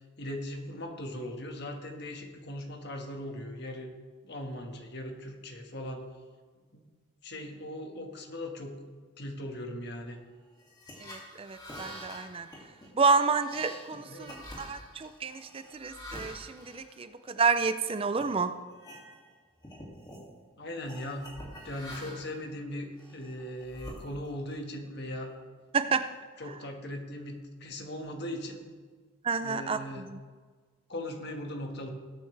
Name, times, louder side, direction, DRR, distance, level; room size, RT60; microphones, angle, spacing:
voice 1, 0.2-3.9 4.2-6.0 6.7-6.8 7.2-8.8 9.2-10.2 13.9-14.4 20.6-21.3 21.6-25.3 26.4-28.6 29.4-30.1 30.9-31.9, left 1 dB, 50° left, 3 dB, 1.6 m, -39 dB
sound 1, 10.6-17.6 18.1-18.3 18.7-19.3 19.6-20.3 20.9-22.4 23.0-24.5, equal, 20° left, 2.3 m, -46 dB
voice 2, 11.0-12.5 13.0-18.5 25.7-26.0 29.2-29.8, right 4 dB, 25° right, 10 dB, 0.4 m, -29 dB
20.0 x 8.7 x 3.3 m, 1.5 s
head